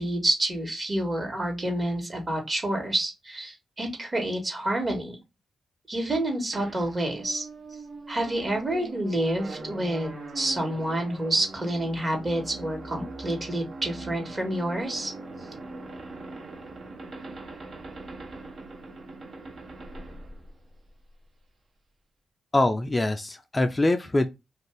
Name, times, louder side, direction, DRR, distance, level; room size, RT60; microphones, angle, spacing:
voice 1, 0.0-5.2 5.9-7.5 8.1-15.1, right 1 dB, 35° right, 1.3 m, -28 dB
sound 1, 6.5-21.3, right 2 dB, 55° right, 0.7 m, -41 dB
voice 2, 22.5-24.3, left 2 dB, 25° left, 0.4 m, -24 dB
2.5 x 2.3 x 3.3 m
supercardioid pair, 45°, 0 cm